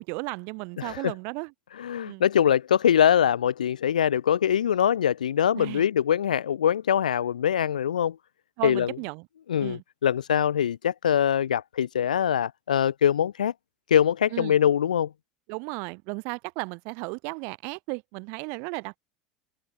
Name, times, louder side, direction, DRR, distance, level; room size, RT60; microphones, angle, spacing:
voice 1, 0.0-1.5 2.0-2.2 5.5-5.9 8.6-9.3 9.6-9.8 14.3-14.6 15.5-19.0, right 34 dB, 55° right, 6.8 m, -34 dB
voice 2, 0.8-1.1 1.8-8.2 8.6-9.0 9.5-13.5 13.9-15.1, left 9 dB, 75° left, 0.8 m, -23 dB
open air
figure-of-eight pair, 75°, 4 cm